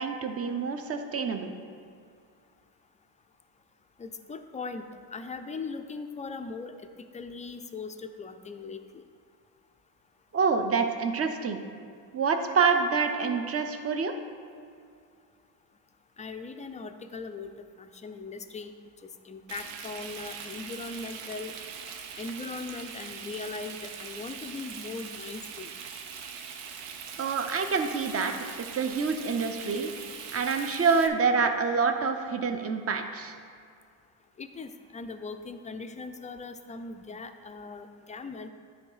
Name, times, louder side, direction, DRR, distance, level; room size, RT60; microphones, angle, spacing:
voice 1, 0.0-1.5 10.3-11.6 12.1-14.2 27.2-28.3 28.7-29.9 30.3-33.4, right 5 dB, 30° right, 6 dB, 0.7 m, -27 dB
voice 2, 4.0-4.8 5.1-9.0 16.2-17.5 17.8-18.7 19.2-21.5 22.2-25.7 34.4-38.5, left 4 dB, 15° left, 7 dB, 0.4 m, -39 dB
Frying (food), 19.5-31.1, right 6 dB, 70° right, 0.8 m, -42 dB
9.7 x 3.3 x 5.6 m, 2.3 s
supercardioid pair, 85°, 44 cm